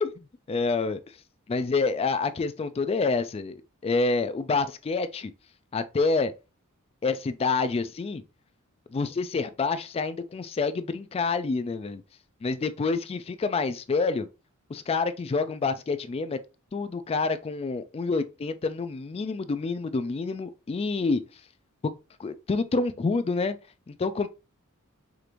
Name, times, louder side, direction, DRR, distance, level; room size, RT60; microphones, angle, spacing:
voice 1, 0.5-1.0 1.5-5.3 5.7-6.3 7.0-8.2 8.9-12.0 12.4-14.3 14.7-16.4 16.7-21.2 22.2-23.6 23.9-24.3, left 4 dB, 25° left, 0.3 m, -27 dB
4.9 x 2.5 x 2.9 m
head